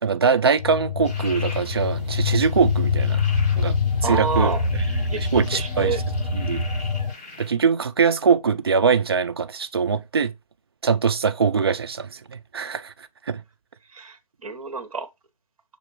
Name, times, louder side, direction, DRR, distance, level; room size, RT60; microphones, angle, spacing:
voice 1, 0.0-3.2 3.6-3.8 4.0-6.0 6.3-6.6 7.4-10.3 10.8-13.4, right 6 dB, 40° right, 0.4 m, -22 dB
sound 1, 0.6-7.1, left 4 dB, 60° left, 1.2 m, -24 dB
sound 2, 1.0-7.5, left 2 dB, 20° left, 3.2 m, -42 dB
voice 2, 4.0-4.6 5.1-5.2 5.5-6.0 13.9-15.1, right 5 dB, 60° right, 0.9 m, -28 dB
6.6 x 2.5 x 3.1 m
figure-of-eight pair, 155°, 20 cm